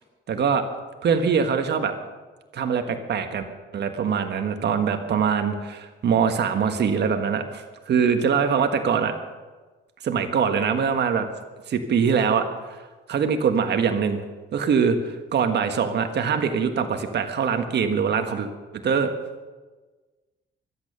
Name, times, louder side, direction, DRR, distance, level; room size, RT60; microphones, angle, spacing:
voice 1, 0.3-0.7 1.0-1.9 2.5-3.5 3.7-9.1 10.0-11.3 11.7-12.8 13.1-14.2 14.5-18.5 18.8-19.1, right 6 dB, 60° right, 6 dB, 1.5 m, -23 dB
23.5 x 8.8 x 6.8 m, 1.3 s
cardioid pair, 90°, 20 cm